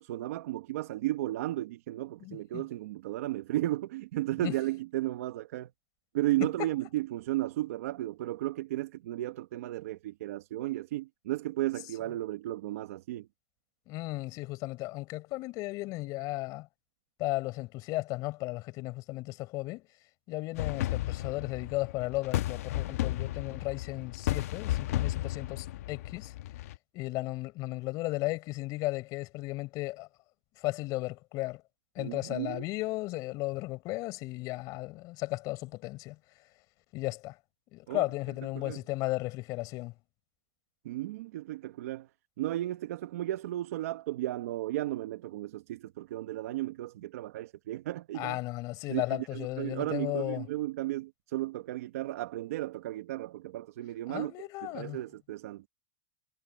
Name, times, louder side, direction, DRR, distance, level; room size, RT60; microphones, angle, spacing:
voice 1, 0.0-5.7 6.1-13.3 32.0-32.6 37.9-38.0 38.6-38.8 40.8-42.1 42.4-48.4 48.9-54.3 54.6-55.6, right 15 dB, 80° right, 1.3 m, -34 dB
voice 2, 2.2-2.6 4.4-4.6 6.6-6.7 13.9-16.7 17.2-19.8 20.3-26.3 26.9-30.1 30.6-31.6 32.0-36.2 36.9-37.4 37.7-39.9 48.1-50.5 54.1-55.0, left 20 dB, 50° left, 5.6 m, -35 dB
sound 1, 20.6-26.8, left 14 dB, 80° left, 1.1 m, -33 dB
supercardioid pair, 130°, 8 cm